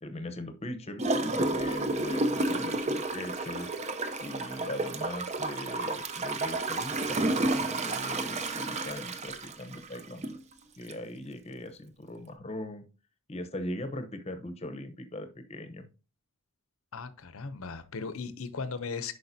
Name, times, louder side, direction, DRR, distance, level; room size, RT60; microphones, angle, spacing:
voice 1, 0.0-3.7 4.2-10.4 10.8-12.9 13.3-15.9, left 1 dB, 30° left, 0.8 m, -40 dB
Gurgling / Toilet flush, 1.0-10.4 10.9-11.0, right 2 dB, 30° right, 0.6 m, -31 dB
voice 2, 16.9-19.1, left 4 dB, 75° left, 0.7 m, -37 dB
10.5 x 4.8 x 2.7 m
head